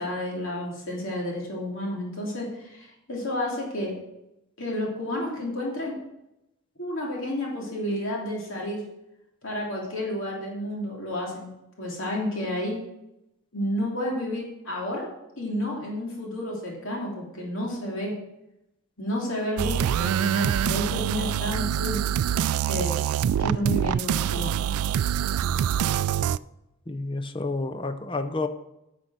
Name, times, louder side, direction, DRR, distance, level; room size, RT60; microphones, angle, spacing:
voice 1, 0.0-3.9 4.6-6.0 6.8-8.8 9.4-11.5 11.8-12.8 13.5-15.0 15.4-18.1 19.0-22.0 22.6-23.0 23.4-24.6, left 1 dB, 60° left, -3 dB, 3.0 m, -31 dB
sound 1, 19.6-26.4, right 9 dB, 85° right, 0.3 m, -25 dB
voice 2, 26.9-28.5, left 3 dB, 25° left, 8 dB, 0.6 m, -30 dB
9.8 x 6.4 x 6.0 m, 0.88 s
head